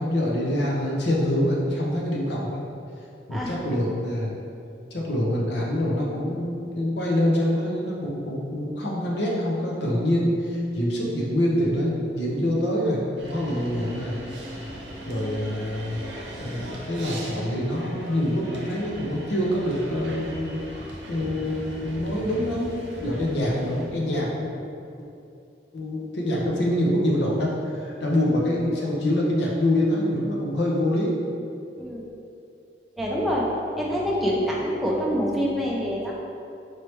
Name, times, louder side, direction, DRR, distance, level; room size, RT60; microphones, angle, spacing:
voice 1, 0.0-2.6 3.3-4.3 4.9-14.2 15.0-16.0 16.4-20.6 21.1-22.7 23.0-24.5 25.7-31.1, left 1 dB, 65° left, -3 dB, 0.7 m, -25 dB
sound 1, 13.2-23.9, right 1 dB, 70° right, 0.7 m, -39 dB
voice 2, 33.0-33.4 33.7-36.1, equal, ahead, -5 dB, 0.5 m, -26 dB
4.5 x 3.2 x 3.0 m, 2.6 s
head